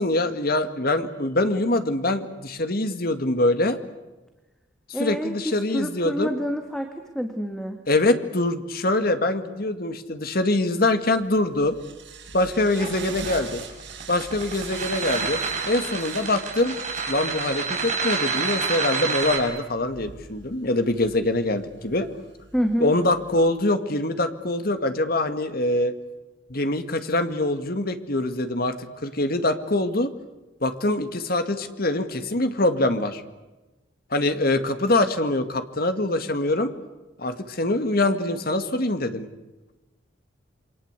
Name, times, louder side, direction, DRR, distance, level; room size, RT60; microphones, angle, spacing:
voice 1, 0.0-3.8 5.0-6.4 7.9-11.7 12.3-13.7 14.1-15.4 15.7-16.7 17.1-22.1 22.8-25.9 26.5-30.1 30.6-33.2 34.1-36.7 37.2-39.3, left 2 dB, 55° left, 9 dB, 2.0 m, -24 dB
voice 2, 4.9-6.9 7.1-7.8 22.5-22.9, equal, 5° left, 5 dB, 1.8 m, -27 dB
sound 1, 11.1-23.5, right 4 dB, 85° right, 7.5 m, -43 dB
sound 2, 12.8-19.4, right 4 dB, 40° right, 6.3 m, -28 dB
28.0 x 24.5 x 8.2 m, 1.1 s
head